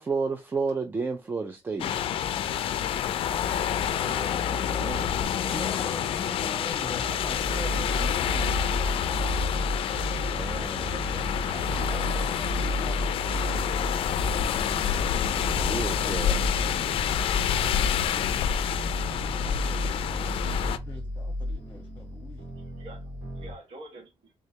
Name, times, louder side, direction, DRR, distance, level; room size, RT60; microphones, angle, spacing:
voice 1, 0.0-1.9 4.7-5.1 10.3-11.0 15.4-16.4, right 4 dB, 20° right, 0.3 m, -32 dB
sound 1, 1.8-20.8, left 9 dB, 65° left, 0.4 m, -28 dB
voice 2, 4.0-5.0 5.5-8.6 11.5-13.6 14.7-15.2 19.1-22.4, left 3 dB, 25° left, 0.9 m, -43 dB
voice 3, 5.4-6.0 6.3-6.4 10.9-12.3 22.6-23.1 23.3-24.3, right 2 dB, 80° right, 1.0 m, -45 dB
sound 2, 6.8-23.5, equal, 50° right, 2.5 m, -33 dB
3.6 x 3.1 x 2.8 m
cardioid pair, 150°, 10 cm